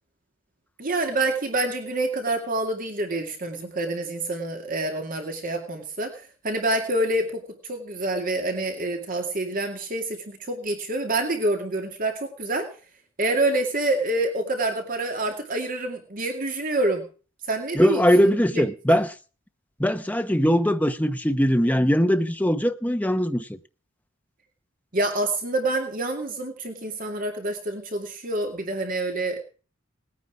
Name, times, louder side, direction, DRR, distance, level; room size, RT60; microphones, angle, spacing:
voice 1, 0.8-7.4 7.7-12.7 13.2-17.0 17.5-18.6 18.9-19.0 24.9-29.4, right 2 dB, 45° right, 2.4 m, -27 dB
voice 2, 17.7-19.1 19.8-23.5, equal, 10° left, 0.9 m, -21 dB
19.5 x 9.7 x 4.8 m
head